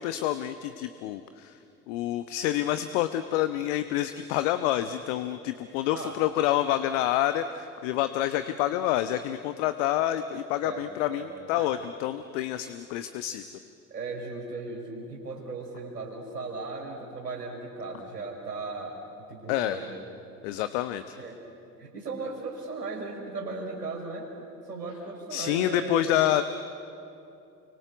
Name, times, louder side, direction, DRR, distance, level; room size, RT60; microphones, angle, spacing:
voice 1, 0.0-1.6 1.9-13.5 19.5-19.8 20.4-21.2 25.3-26.4, left 13 dB, 50° left, 11 dB, 1.1 m, -28 dB
voice 2, 10.6-11.7 13.9-19.0 19.3-20.0 21.2-21.4 21.8-24.3 24.7-26.2, right 3 dB, 80° right, 0 dB, 4.9 m, -37 dB
29.5 x 24.0 x 8.1 m, 2.7 s
figure-of-eight pair, 70°, 47 cm